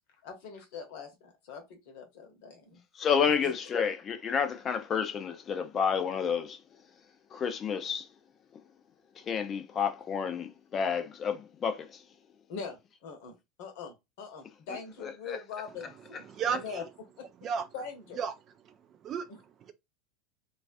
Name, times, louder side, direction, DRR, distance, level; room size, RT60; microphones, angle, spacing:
voice 1, 0.2-2.8 3.4-3.5 12.5-16.8 17.2-17.3 17.7-18.2, left 5 dB, 55° left, 0.8 m, -43 dB
voice 2, 3.0-6.6 7.3-8.1 9.2-12.0 15.0-15.4, left 7 dB, 30° left, 0.5 m, -30 dB
voice 3, 16.3-16.9 17.4-17.7 18.2-18.3 18.6-19.7, right 7 dB, 35° right, 0.3 m, -34 dB
2.3 x 2.3 x 2.5 m
figure-of-eight pair, 80°, 0 cm